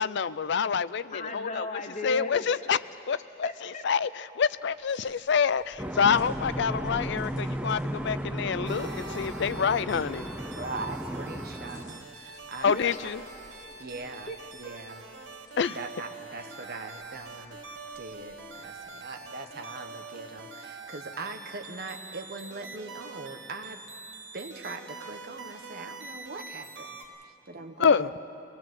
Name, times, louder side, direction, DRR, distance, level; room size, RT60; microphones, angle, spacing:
voice 1, 0.0-1.7 2.0-2.8 3.1-3.5 3.8-10.3 12.6-13.2 15.6-15.8 27.8-28.1, left 6 dB, 60° left, 0.5 m, -27 dB
voice 2, 1.1-2.5 3.1-3.8 12.6-13.0 13.4-13.8 14.3-14.4, left 2 dB, 40° left, 0.9 m, -37 dB
sound 1, 4.5-18.7, equal, 20° left, 6.1 m, -54 dB
sound 2, 5.8-12.0, equal, 5° right, 0.5 m, -35 dB
sound 3, 8.6-27.1, right 3 dB, 85° right, 2.5 m, -44 dB
voice 3, 10.5-13.1 13.8-15.1 15.7-17.6 17.9-23.8 24.3-27.0 27.2-28.1, right 3 dB, 50° right, 1.3 m, -41 dB
22.5 x 19.0 x 7.8 m
head